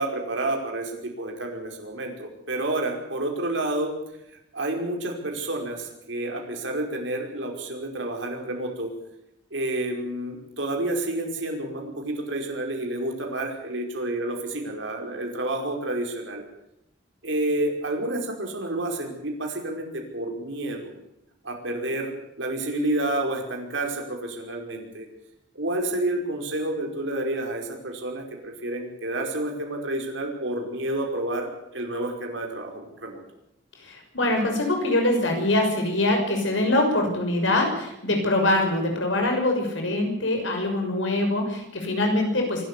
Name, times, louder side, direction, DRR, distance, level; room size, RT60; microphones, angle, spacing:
voice 1, 0.0-3.9 4.5-8.9 9.5-16.4 17.2-20.9 21.4-25.1 25.6-33.2, right 1 dB, 75° right, 2 dB, 5.2 m, -29 dB
voice 2, 33.8-42.6, left 1 dB, 80° left, 3 dB, 6.5 m, -23 dB
25.5 x 13.0 x 8.5 m, 0.82 s
head